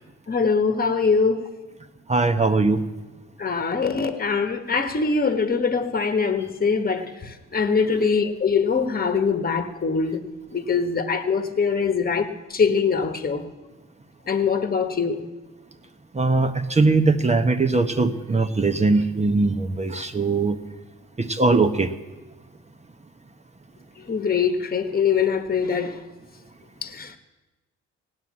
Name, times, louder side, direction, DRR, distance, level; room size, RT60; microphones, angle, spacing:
voice 1, 0.3-1.5 3.4-10.2 10.5-13.4 14.3-15.2 24.1-26.0 26.8-27.2, left 5 dB, 30° left, 8 dB, 1.4 m, -23 dB
voice 2, 2.1-2.8 16.1-20.6 21.2-21.9, right 3 dB, 20° right, 6 dB, 1.0 m, -20 dB
17.0 x 9.6 x 7.4 m, 1.1 s
cardioid pair, 90°, 30 cm